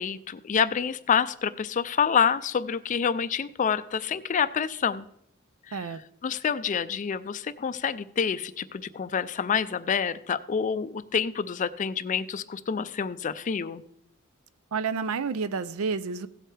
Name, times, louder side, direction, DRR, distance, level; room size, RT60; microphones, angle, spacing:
voice 1, 0.0-5.1 5.7-5.9 6.2-13.8, left 7 dB, 35° left, 14 dB, 0.4 m, -27 dB
voice 2, 14.7-16.3, right 5 dB, 80° right, 15 dB, 0.5 m, -30 dB
16.5 x 7.7 x 3.3 m, 0.75 s
head